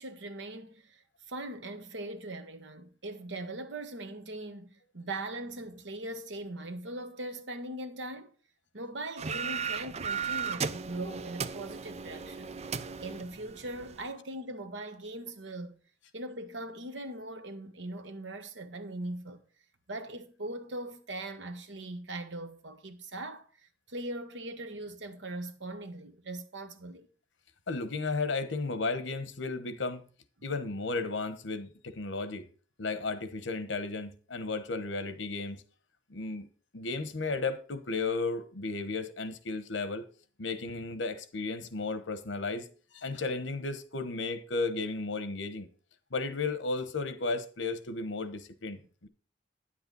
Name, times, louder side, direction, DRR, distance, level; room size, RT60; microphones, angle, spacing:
voice 1, 0.0-8.3 8.7-15.8 16.1-19.4 19.9-23.5 23.9-27.1, right 1 dB, 70° right, 1.3 m, -40 dB
sound 1, 9.2-14.1, right 6 dB, 35° right, 0.5 m, -36 dB
voice 2, 27.7-30.1 30.4-32.5 32.8-35.6 36.1-36.5 36.7-40.0 40.4-45.7 46.1-49.1, left 3 dB, 90° left, 1.1 m, -34 dB
9.8 x 8.0 x 4.0 m
head